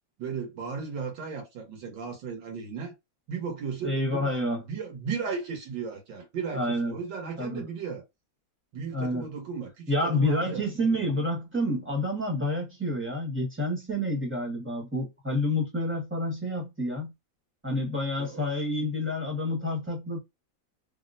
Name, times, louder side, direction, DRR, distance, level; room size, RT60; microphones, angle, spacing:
voice 1, 0.2-2.9 3.3-4.4 4.7-8.0 8.7-11.0 18.2-18.5, right 5 dB, 85° right, 1.8 m, -35 dB
voice 2, 3.8-4.6 6.5-7.0 7.4-7.7 8.9-9.2 9.9-17.1 17.6-20.2, left 1 dB, 10° right, 1.0 m, -28 dB
3.7 x 2.1 x 2.5 m
omnidirectional pair, 2.0 m